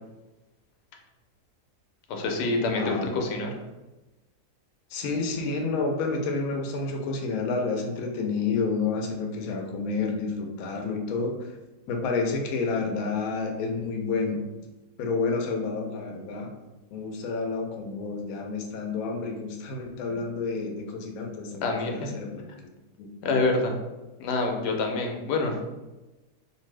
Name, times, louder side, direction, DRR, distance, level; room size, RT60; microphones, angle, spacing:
voice 1, 2.1-3.5 21.6-22.1 23.2-23.7 24.2-25.5, left 3 dB, 85° left, 2 dB, 1.2 m, -26 dB
voice 2, 2.7-3.1 4.9-11.5 11.9-14.4 15.0-16.5 16.9-22.5 23.0-23.4, left 4 dB, 70° left, 2 dB, 0.9 m, -30 dB
2.6 x 2.5 x 3.1 m, 1.1 s
omnidirectional pair, 1.7 m